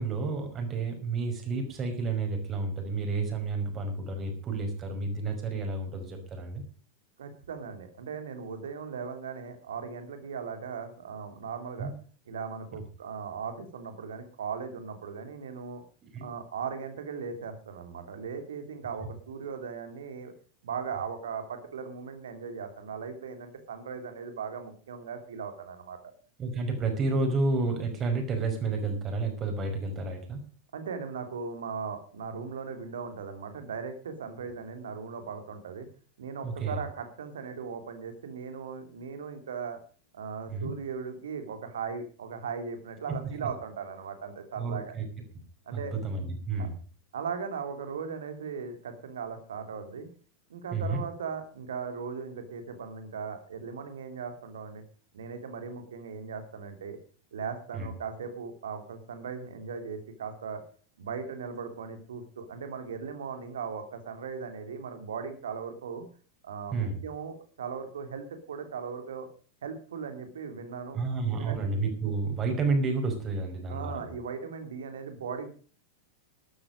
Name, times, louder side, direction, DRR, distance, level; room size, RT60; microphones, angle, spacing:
voice 1, 0.0-6.6 11.8-11.9 16.1-16.3 26.4-30.4 36.4-36.8 40.5-40.7 43.4-43.5 44.6-45.1 45.7-46.7 50.7-51.0 57.7-57.9 66.7-67.0 70.9-74.0, right 3 dB, 30° right, 5 dB, 5.4 m, -30 dB
voice 2, 7.2-11.9 12.3-15.8 16.2-20.3 20.6-26.1 30.7-35.9 36.2-39.8 40.1-44.9 45.7-46.0 46.6-46.7 47.1-50.1 50.5-54.8 55.1-57.0 57.3-60.6 61.0-66.1 66.4-69.3 69.6-71.0 71.3-71.6 73.7-75.5, right 6 dB, 65° right, 8 dB, 3.0 m, -38 dB
13.0 x 12.5 x 6.4 m, 0.41 s
figure-of-eight pair, 90°, 0 cm